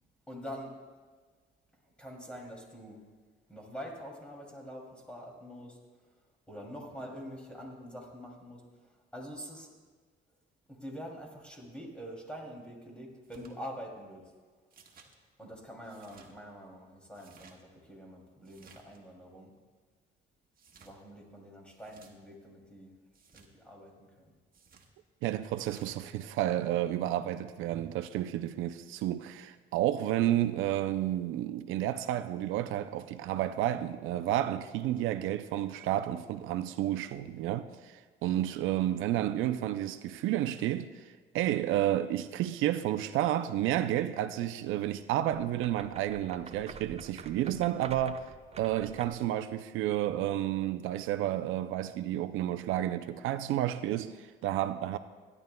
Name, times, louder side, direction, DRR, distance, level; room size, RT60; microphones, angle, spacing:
voice 1, 0.3-0.8 1.8-3.0 3.5-9.7 10.7-14.3 15.4-19.5 20.8-22.9 23.3-24.3, equal, 5° left, 2.6 m, -45 dB
sound 1, 13.2-13.5 14.7-15.1 15.8-16.3 17.1-17.6 18.4-19.0 20.5-21.0 21.7-22.1 23.1-23.5 24.5-24.9 25.6-26.0, right 5 dB, 45° right, 1.4 m, -58 dB
voice 2, 25.2-48.3 48.6-55.0, right 12 dB, 90° right, 0.4 m, -31 dB
sound 2, 45.2-49.3, right 5 dB, 30° right, 0.6 m, -48 dB
16.5 x 11.0 x 2.2 m
cardioid pair, 90°, 20 cm